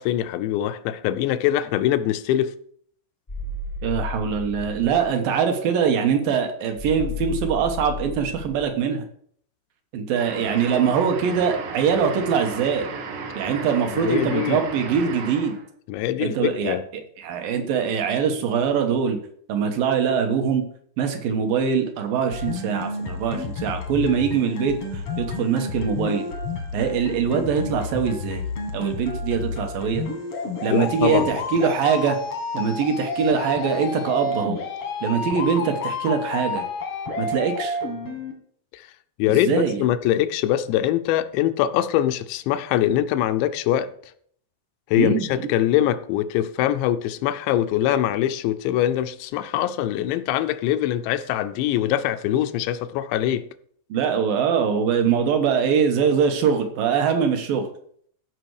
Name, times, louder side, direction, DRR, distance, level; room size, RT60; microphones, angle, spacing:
voice 1, 0.0-2.5 13.9-14.6 15.9-16.8 30.7-31.3 38.7-38.9 39.2-43.9 44.9-53.4, left 12 dB, 85° left, 2.8 m, -23 dB
sound 1, 3.3-5.1 6.7-8.7, left 4 dB, 20° left, 0.8 m, -33 dB
voice 2, 3.8-9.0 9.9-12.9 13.4-15.6 16.2-16.8 17.2-19.2 19.5-20.6 21.0-26.3 26.7-28.4 28.7-30.0 30.6-32.2 32.5-34.6 35.0-36.6 37.2-37.8 39.3-39.8 45.0-45.3 53.9-57.7, right 6 dB, 70° right, 2.4 m, -23 dB
sound 2, 10.2-15.7, right 5 dB, 85° right, 3.8 m, -34 dB
sound 3, 22.3-38.3, left 3 dB, 60° left, 1.5 m, -30 dB
14.5 x 5.9 x 4.7 m
omnidirectional pair, 5.1 m